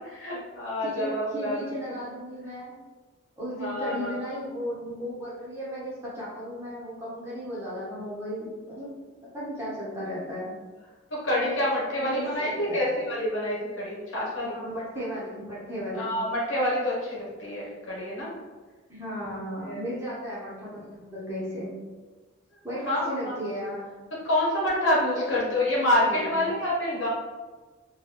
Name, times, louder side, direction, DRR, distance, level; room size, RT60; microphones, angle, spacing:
voice 1, 0.0-1.7 3.6-4.1 11.1-14.6 15.9-18.3 19.6-19.8 22.9-23.4 24.1-27.1, left 1 dB, 70° left, -6 dB, 1.1 m, -27 dB
voice 2, 0.8-2.7 3.4-8.9 9.3-10.5 12.0-12.9 14.4-16.1 18.9-21.7 22.6-23.9 25.1-25.2 25.9-26.3, equal, 15° right, -8 dB, 0.8 m, -35 dB
2.9 x 2.2 x 3.2 m, 1.3 s
head